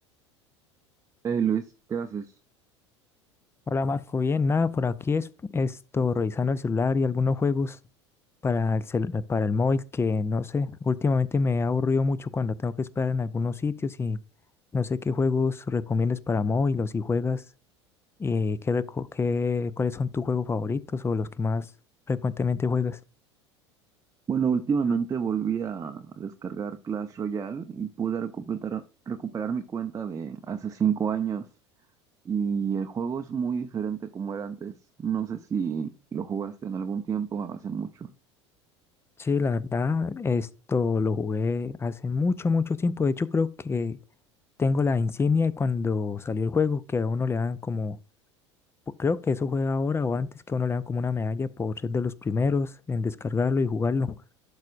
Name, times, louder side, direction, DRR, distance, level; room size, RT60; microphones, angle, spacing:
voice 1, 1.2-2.3 24.3-31.4 32.2-38.1, right 7 dB, 20° right, 0.6 m, -29 dB
voice 2, 3.7-5.3 5.5-7.8 8.4-14.2 14.7-17.4 18.2-21.7 22.1-23.0 39.2-44.0 44.6-48.0 48.9-54.2, left 4 dB, 15° left, 0.5 m, -26 dB
11.5 x 4.8 x 2.5 m
hypercardioid pair, 75°, 15 cm